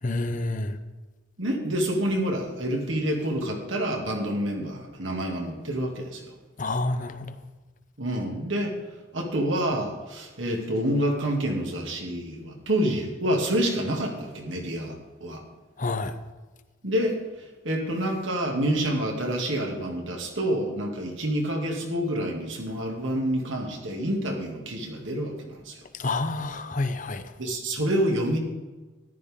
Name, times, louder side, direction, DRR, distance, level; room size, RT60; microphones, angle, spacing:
voice 1, 0.0-0.8 6.6-7.3 15.8-16.1 26.0-27.2, left 2 dB, 40° left, 9 dB, 0.7 m, -28 dB
voice 2, 1.4-6.3 8.0-8.7 9.1-15.4 16.8-17.1 17.6-25.8 27.4-28.4, right 1 dB, 75° right, 1 dB, 2.4 m, -28 dB
14.0 x 11.5 x 3.7 m, 1.2 s
head